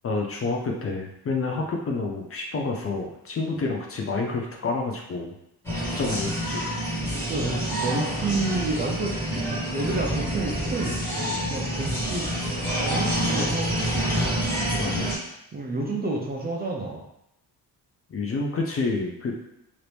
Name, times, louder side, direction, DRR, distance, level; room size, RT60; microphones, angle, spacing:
voice 1, 0.0-5.3 5.7-6.7 14.8-15.1 18.1-19.3, left 3 dB, 35° left, 1 dB, 0.5 m, -29 dB
sound 1, 5.6-15.1, equal, 5° left, 1.4 m, -27 dB
voice 2, 7.3-12.3 12.8-14.0 15.5-17.0, right 2 dB, 25° right, -1 dB, 0.4 m, -30 dB
2.9 x 2.5 x 3.3 m, 0.81 s
cardioid pair, 130°, 40 cm